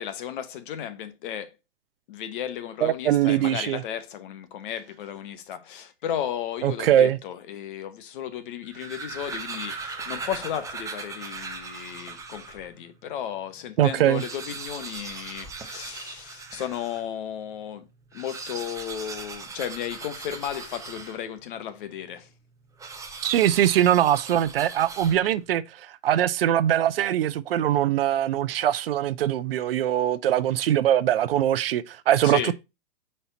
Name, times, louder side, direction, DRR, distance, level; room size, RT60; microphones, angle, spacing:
voice 1, 0.0-1.5 2.1-17.9 18.1-22.3 32.2-32.5, left 10 dB, 50° left, 1.1 m, -34 dB
voice 2, 2.8-3.8 6.6-7.2 13.8-14.2 23.2-32.5, right 11 dB, 60° right, 0.5 m, -22 dB
sound 1, 8.5-12.7 13.2-13.3 13.5-13.6 14.0-17.1 18.0-21.5 22.8-25.5, right 4 dB, 10° right, 0.7 m, -39 dB
5.5 x 4.4 x 4.0 m
hypercardioid pair, 120°, 33 cm